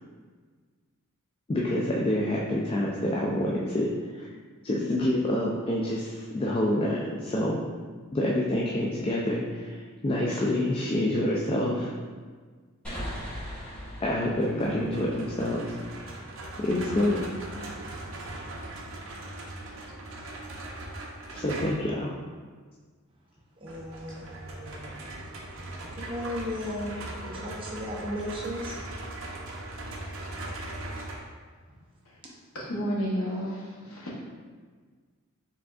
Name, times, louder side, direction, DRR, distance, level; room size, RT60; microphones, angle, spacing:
voice 1, 1.5-4.3 4.6-7.6 8.1-11.9 14.0-15.8 16.6-17.2 17.5-17.8 21.3-22.1, left 1 dB, 25° left, -3 dB, 0.3 m, -27 dB
sound 1, 12.8-16.3, equal, 5° left, 1.2 m, -40 dB
sound 2, 14.4-21.9 23.7-31.2, right 1 dB, 65° right, 0.6 m, -40 dB
voice 2, 23.6-25.0 25.9-26.9 27.2-28.8, left 1 dB, 25° right, -3 dB, 0.6 m, -36 dB
voice 3, 32.5-34.2, equal, 70° left, -3 dB, 0.9 m, -32 dB
4.8 x 3.5 x 2.4 m, 1.5 s
head